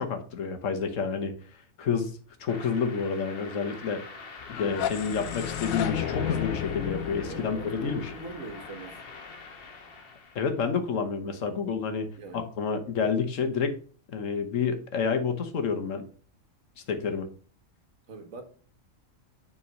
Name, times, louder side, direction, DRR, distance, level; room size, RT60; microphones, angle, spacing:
voice 1, 0.0-1.3 1.8-2.1 2.4-4.0 4.5-8.1 10.3-12.1 12.3-13.8 14.1-16.0 16.9-17.3, left 5 dB, 70° left, 1.3 m, -29 dB
sound 1, 2.5-10.6, left 4 dB, 50° left, 1.2 m, -44 dB
sound 2, 4.4-9.3, left 10 dB, 85° left, 1.0 m, -33 dB
voice 2, 7.2-9.0 12.2-12.5 18.1-18.4, right 3 dB, 75° right, 1.6 m, -41 dB
7.1 x 3.7 x 5.1 m
omnidirectional pair, 1.4 m